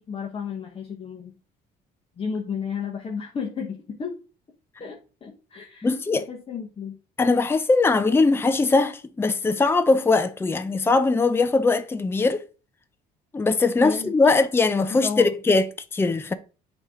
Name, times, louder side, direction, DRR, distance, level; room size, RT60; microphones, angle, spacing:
voice 1, 0.0-1.4 2.2-4.2 4.8-7.0 13.8-14.4 14.9-15.3, left 6 dB, 35° left, 1.1 m, -33 dB
voice 2, 5.8-6.2 7.2-12.4 13.3-16.3, left 3 dB, 15° left, 0.5 m, -21 dB
7.6 x 3.0 x 4.8 m
cardioid pair, 110°, 17 cm